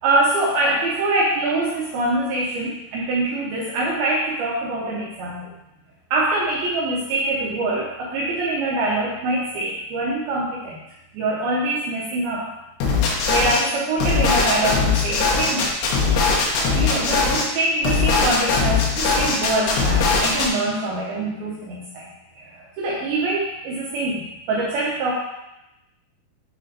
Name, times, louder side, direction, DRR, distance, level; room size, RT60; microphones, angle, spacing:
voice 1, 0.0-5.5 6.1-10.8 11.1-12.5 13.3-15.7 16.6-22.1 22.4-25.1, right 2 dB, 80° right, -5 dB, 2.2 m, -24 dB
sound 1, 12.8-13.6 14.0-17.4 17.8-20.5, left 4 dB, 80° left, 3.5 m, -20 dB
7.9 x 3.4 x 3.9 m, 0.91 s
omnidirectional pair, 5.4 m